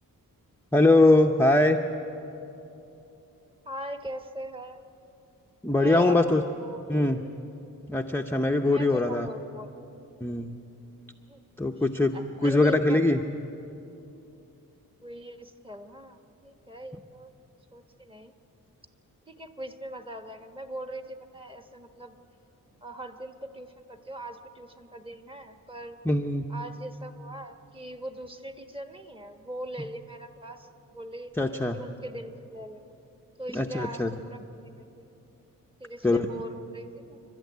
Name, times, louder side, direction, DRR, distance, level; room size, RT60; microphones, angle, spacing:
voice 1, 0.7-1.8 5.6-6.4 6.9-7.2 7.9-9.3 10.2-10.6 11.6-13.2 26.1-26.5 31.4-31.8 33.5-34.1 36.0-36.3, left 2 dB, 5° left, 3 dB, 0.7 m, -22 dB
voice 2, 3.6-4.8 5.7-7.2 8.6-9.7 11.3-11.8 12.1-13.0 15.0-17.3 17.7-18.3 19.3-22.2 22.8-26.0 26.5-31.3 31.7-32.9 33.4-35.1 35.8-37.2, right 1 dB, 15° right, 7 dB, 1.3 m, -41 dB
29.0 x 12.5 x 9.4 m, 2.9 s
wide cardioid pair, 105°, 34 cm